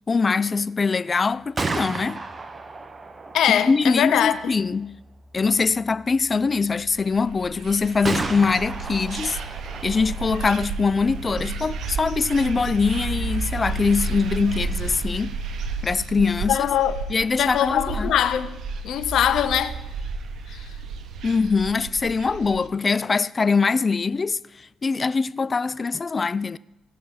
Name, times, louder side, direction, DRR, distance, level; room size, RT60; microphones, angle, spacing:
voice 1, 0.1-2.2 3.5-5.0 5.3-9.4 9.8-15.4 15.8-16.7 17.1-18.1 21.2-26.6, left 4 dB, 40° left, 0.4 m, -23 dB
Gunshot gunfire, 1.3-15.1, right 3 dB, 35° right, 1.1 m, -36 dB
voice 2, 3.3-4.4 16.5-17.0 17.4-18.5 18.8-19.8 20.5-20.7, left 10 dB, 75° left, 0.7 m, -22 dB
sound 1, 7.0-22.7, right 4 dB, 70° right, 1.0 m, -32 dB
18.0 x 6.3 x 3.9 m
supercardioid pair, 55°, 0 cm